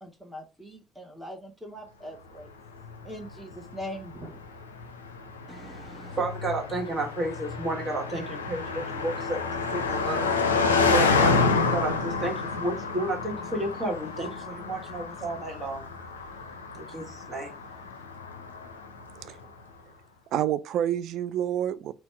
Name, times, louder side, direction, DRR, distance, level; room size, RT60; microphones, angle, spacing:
voice 1, 0.0-2.5 3.0-4.4, equal, 10° right, 0.9 m, -41 dB
Car passing by, 2.8-19.2, left 4 dB, 80° left, 0.4 m, -29 dB
voice 2, 5.5-11.4 11.7-15.8 16.7-17.6, right 2 dB, 35° right, 1.4 m, -32 dB
voice 3, 20.3-21.9, right 11 dB, 55° right, 0.3 m, -28 dB
4.1 x 2.2 x 4.4 m
figure-of-eight pair, 50°, 0 cm